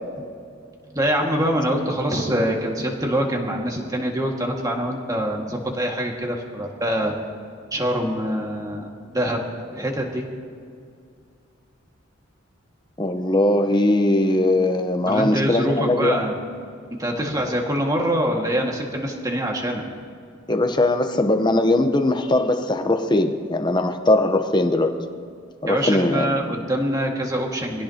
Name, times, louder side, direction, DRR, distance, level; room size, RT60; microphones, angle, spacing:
voice 1, 0.9-7.1 7.7-8.9 9.1-10.3 15.1-16.4 17.0-19.8 25.7-27.8, equal, 20° right, 0 dB, 1.9 m, -24 dB
voice 2, 13.0-16.2 20.5-25.0 25.6-26.4, left 1 dB, 20° left, 6 dB, 0.9 m, -20 dB
24.5 x 17.0 x 2.9 m, 2.3 s
head